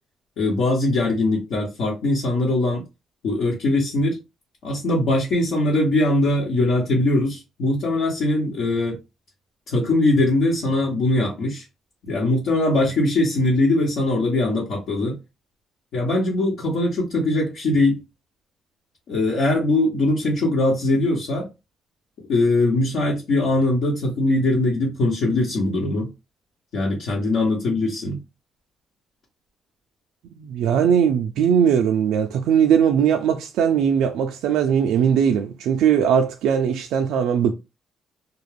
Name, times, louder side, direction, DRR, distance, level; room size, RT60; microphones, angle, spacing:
voice 1, 0.4-2.8 3.2-4.2 4.6-9.0 9.7-11.6 12.1-15.2 15.9-18.0 19.1-21.5 22.3-26.1 26.7-28.2, left 2 dB, 75° left, 0.9 m, -21 dB
voice 2, 30.4-37.5, right 8 dB, 90° right, 0.3 m, -19 dB
2.4 x 2.1 x 3.2 m
cardioid pair, 105°, 0 cm